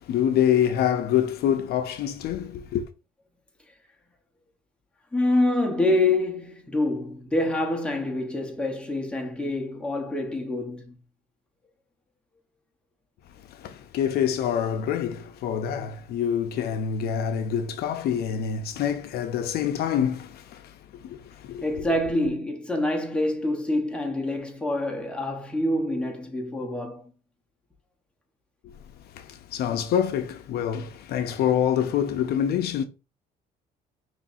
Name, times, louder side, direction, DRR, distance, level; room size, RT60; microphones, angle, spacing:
voice 1, 0.0-2.9 13.5-21.9 28.6-28.7 29.1-32.8, left 9 dB, 70° left, 0.6 m, -26 dB
voice 2, 5.1-11.0 21.6-27.1, left 1 dB, 5° left, 1.1 m, -26 dB
5.5 x 3.1 x 2.6 m
cardioid pair, 110°, 17 cm